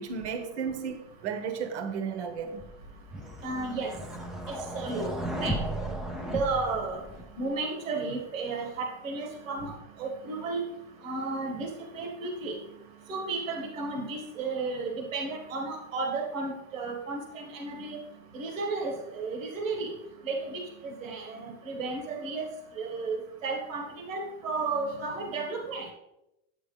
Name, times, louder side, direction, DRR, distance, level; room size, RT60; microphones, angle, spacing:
voice 1, 0.0-2.6 9.6-9.7, right 6 dB, 60° right, 1.3 m, -34 dB
sound 1, 2.6-7.5, right 1 dB, ahead, 0.6 m, -35 dB
voice 2, 3.4-3.9 4.5-5.1 5.4-5.6 6.2-7.0 7.3-10.6 11.0-12.5 13.1-18.0 18.3-19.9 20.2-22.5 22.7-25.9, right 3 dB, 90° right, 1.8 m, -33 dB
8.9 x 8.6 x 3.3 m
supercardioid pair, 140°, 38 cm